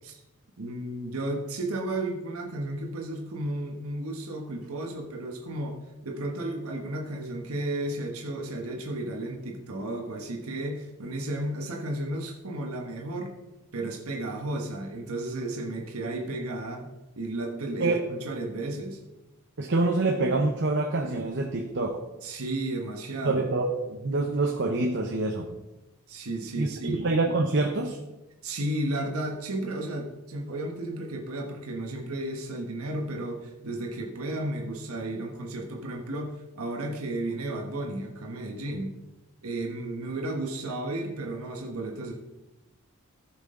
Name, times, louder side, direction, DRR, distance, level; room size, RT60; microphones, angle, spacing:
voice 1, 0.6-13.3 13.7-16.9 17.2-19.0 22.2-23.4 26.1-27.0 28.4-38.9 39.4-42.1, right 1 dB, 85° right, 1 dB, 1.3 m, -33 dB
voice 2, 19.6-22.0 23.2-25.5 26.6-28.0, right 2 dB, 55° right, 2 dB, 0.8 m, -26 dB
14.5 x 6.3 x 3.8 m, 1.0 s
head